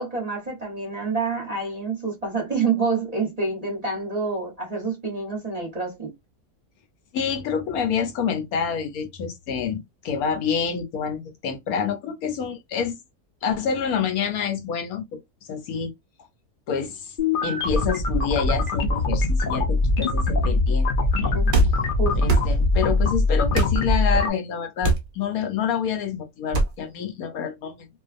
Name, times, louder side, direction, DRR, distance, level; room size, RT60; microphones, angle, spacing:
voice 1, 0.0-6.1 21.3-22.4, right 4 dB, 30° right, 0.8 m, -28 dB
voice 2, 7.1-13.0 13.4-15.2 15.5-15.9 16.7-17.2 17.4-20.9 21.1-21.4 22.1-27.9, left 7 dB, 75° left, 1.1 m, -27 dB
sound 1, 17.2-24.3, left 2 dB, 60° left, 0.5 m, -22 dB
sound 2, 21.5-21.8 22.3-22.5 23.5-23.8 24.8-25.1 26.5-26.7, right 2 dB, 60° right, 0.5 m, -21 dB
2.6 x 2.3 x 2.4 m
omnidirectional pair, 1.6 m